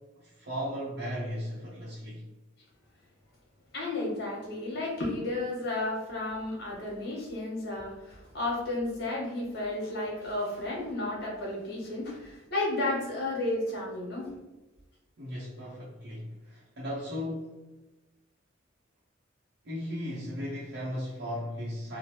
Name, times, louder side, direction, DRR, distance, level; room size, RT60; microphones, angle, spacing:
voice 1, 0.2-2.3 15.2-17.6 19.6-22.0, equal, 60° right, -8 dB, 0.7 m, -36 dB
voice 2, 3.7-14.3, left 2 dB, 55° left, -4 dB, 1.1 m, -32 dB
3.1 x 2.0 x 2.8 m, 1.1 s
head